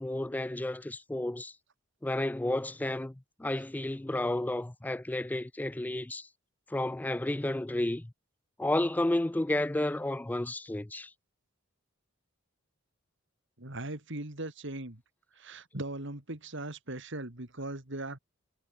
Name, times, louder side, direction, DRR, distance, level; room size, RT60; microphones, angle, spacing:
voice 1, 0.0-1.5 2.0-3.1 3.4-6.3 6.7-8.1 8.6-11.1, left 1 dB, 10° left, 0.3 m, -31 dB
voice 2, 13.6-15.0 15.4-18.2, right 2 dB, 60° right, 3.3 m, -39 dB
head